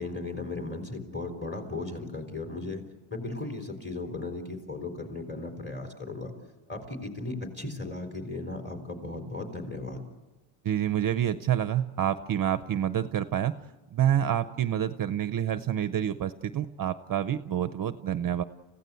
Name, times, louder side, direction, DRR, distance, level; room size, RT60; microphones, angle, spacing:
voice 1, 0.0-2.8 3.1-6.3 6.7-10.1, left 2 dB, 20° left, 4 dB, 3.8 m, -36 dB
voice 2, 10.6-13.5 13.9-18.4, right 10 dB, 45° right, 11 dB, 0.7 m, -28 dB
29.5 x 16.5 x 8.2 m, 1.2 s
cardioid pair, 150°, 49 cm